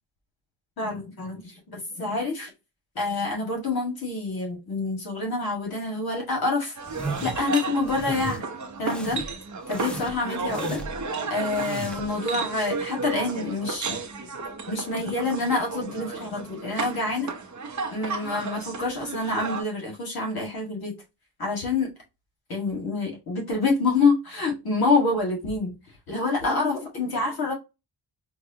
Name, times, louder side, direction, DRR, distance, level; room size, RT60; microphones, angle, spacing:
voice 1, 0.8-2.5 3.0-6.7 7.2-8.4 8.8-9.2 9.7-10.8 11.3-14.0 14.7-17.3 17.9-20.9 21.4-21.9 22.5-25.7 26.1-27.5, left 3 dB, 55° left, 1.7 m, -27 dB
sound 1, 6.7-19.6, right 4 dB, 45° right, 0.8 m, -33 dB
sound 2, 6.9-7.4 7.8-8.4 8.8-9.3 9.7-11.0 11.4-12.1, right 2 dB, ahead, 0.4 m, -36 dB
4.6 x 2.3 x 2.7 m
wide cardioid pair, 140°, 43 cm